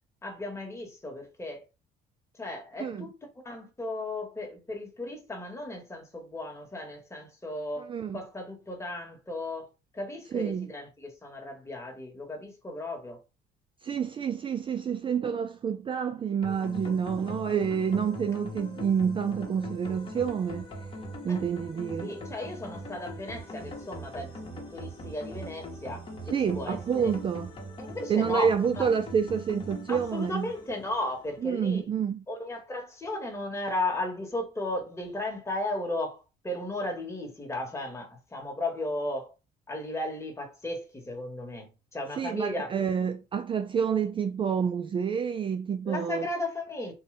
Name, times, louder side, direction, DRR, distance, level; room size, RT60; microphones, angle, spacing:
voice 1, 0.2-1.6 2.4-3.1 3.4-9.7 9.9-13.2 21.3-21.4 22.0-27.1 27.8-28.5 28.8-28.9 29.9-31.8 32.3-39.3 39.7-42.7 45.8-46.9, left 2 dB, 15° left, 1.5 m, -35 dB
voice 2, 2.8-3.1 7.8-8.2 10.3-10.7 13.8-20.7 21.2-22.2 26.3-27.5 28.1-30.5 31.4-32.2 42.1-46.3, right 7 dB, 30° right, 0.4 m, -28 dB
sound 1, 16.4-31.5, left 1 dB, 30° left, 1.3 m, -41 dB
3.8 x 2.6 x 3.3 m
cardioid pair, 110°, 17 cm